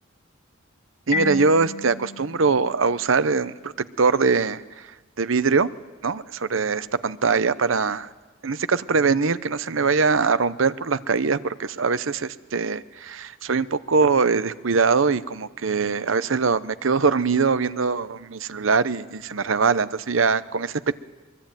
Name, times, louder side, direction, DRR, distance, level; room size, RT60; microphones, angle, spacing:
Marimba xylophone, 1.1-3.8, left 3 dB, 45° left, 2.6 m, -33 dB
voice 1, 1.1-4.9 5.2-5.7 6.0-8.1 8.4-20.9, right 4 dB, 70° right, 15 dB, 0.8 m, -22 dB
23.5 x 22.5 x 9.1 m, 1.3 s
head